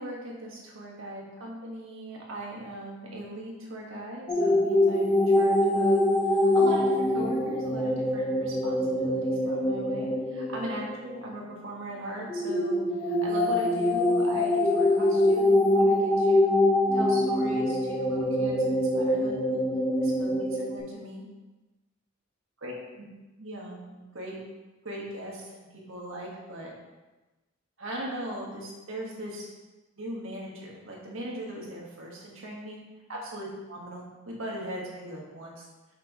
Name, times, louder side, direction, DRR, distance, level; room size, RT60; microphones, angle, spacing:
voice 1, 0.0-16.5 16.9-19.6 20.0-21.2 22.6-22.7 23.4-24.3 24.8-26.7 27.8-29.5 29.9-32.8 33.1-35.6, right 1 dB, 80° right, -2 dB, 1.5 m, -39 dB
sound 1, 4.3-11.4 12.3-20.8, left 1 dB, 20° left, 0.8 m, -24 dB
6.0 x 5.5 x 3.0 m, 1.1 s
head